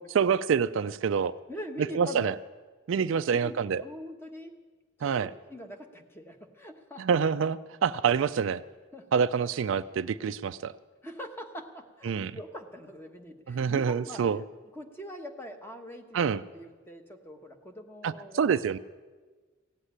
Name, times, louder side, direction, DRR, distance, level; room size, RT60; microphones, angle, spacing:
voice 1, 0.2-1.3 1.9-2.3 2.9-3.8 5.0-5.3 7.0-8.6 9.1-10.7 12.0-12.3 13.5-14.4 16.1-16.4 18.0-18.8, right 6 dB, 65° right, 14 dB, 0.4 m, -26 dB
voice 2, 1.5-2.4 3.3-4.5 5.0-7.2 8.9-9.2 11.0-14.2 14.7-18.6, equal, 10° left, 5 dB, 1.1 m, -43 dB
16.0 x 8.1 x 9.9 m, 1.4 s
head